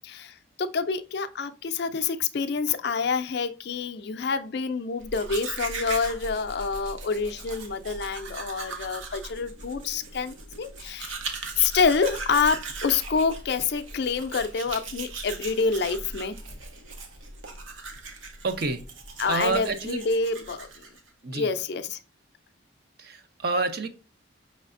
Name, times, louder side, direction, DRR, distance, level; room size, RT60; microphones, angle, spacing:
voice 1, 0.0-11.2 11.6-16.4 19.2-20.7 21.3-22.0, left 5 dB, 55° left, 0.4 m, -27 dB
Domestic sounds home sounds, 5.0-21.1, right 3 dB, 75° right, 0.8 m, -39 dB
voice 2, 18.4-18.9 19.3-20.0 21.2-21.5 23.0-23.9, right 3 dB, 50° right, 0.6 m, -28 dB
5.5 x 3.2 x 2.5 m
head